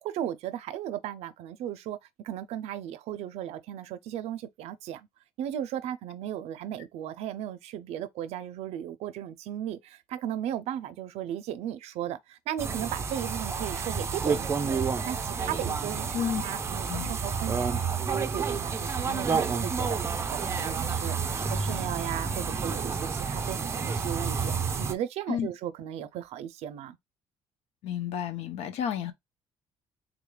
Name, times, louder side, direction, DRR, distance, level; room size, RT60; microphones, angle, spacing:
voice 1, 0.0-5.1 5.4-17.8 18.1-20.0 20.3-24.5 24.8-27.0, right 11 dB, 85° right, 0.5 m, -36 dB
sound 1, 12.6-24.9, right 5 dB, 25° right, 0.4 m, -30 dB
voice 2, 27.8-29.1, left 8 dB, 80° left, 0.7 m, -31 dB
3.6 x 2.3 x 3.2 m
cardioid pair, 140°, 11 cm